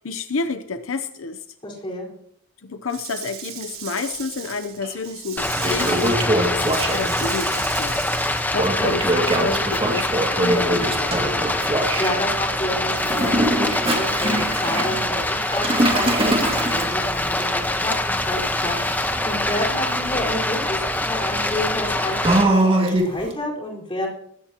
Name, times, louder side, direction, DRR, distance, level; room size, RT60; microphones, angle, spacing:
voice 1, 0.0-1.4 2.6-11.4, left 4 dB, 75° left, 9 dB, 0.8 m, -30 dB
voice 2, 1.6-2.1 12.0-24.1, left 1 dB, 25° left, -2 dB, 4.7 m, -30 dB
Rattle / Rattle (instrument), 2.9-8.4, right 9 dB, 85° right, 3.5 m, -36 dB
Toilet flush, 4.8-4.9 5.4-7.3 8.5-12.1 13.0-23.3, right 1 dB, 25° right, 2.2 m, -24 dB
Stream, 5.4-22.4, left 1 dB, 10° left, 1.1 m, -24 dB
20.5 x 16.0 x 3.0 m, 0.69 s
head